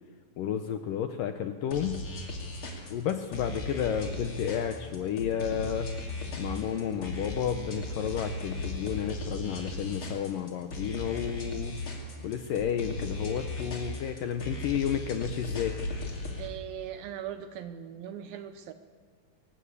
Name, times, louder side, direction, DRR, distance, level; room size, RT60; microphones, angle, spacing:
voice 1, 0.4-2.0 2.9-5.9 6.4-11.7 12.2-15.8, left 9 dB, 75° left, 8 dB, 2.1 m, -31 dB
sound 1, 1.7-16.5, left 2 dB, 35° left, 2.9 m, -37 dB
voice 2, 16.4-18.7, right 9 dB, 75° right, 10 dB, 2.4 m, -39 dB
23.0 x 18.0 x 8.4 m, 1.5 s
omnidirectional pair, 4.9 m